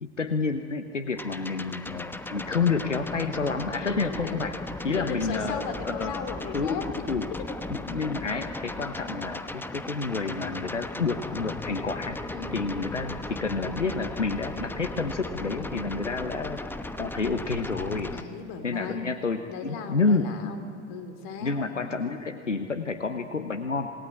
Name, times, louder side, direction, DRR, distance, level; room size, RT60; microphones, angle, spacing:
voice 1, 0.0-4.6 4.8-6.1 6.5-7.3 7.8-12.2 12.5-16.6 17.0-18.1 18.6-20.3 21.4-23.9, left 4 dB, 90° left, 9 dB, 1.1 m, -29 dB
sound 1, 1.2-18.2, left 2 dB, 5° left, 1.1 m, -36 dB
voice 2, 3.9-4.4 5.0-6.8 12.3-12.8 15.7-16.2 18.1-19.0 19.5-21.7, left 5 dB, 50° left, 7 dB, 3.1 m, -37 dB
sound 2, 10.0-17.6, left 3 dB, 35° left, 6.9 m, -52 dB
27.5 x 19.5 x 10.0 m, 2.6 s
figure-of-eight pair, 85°, 36 cm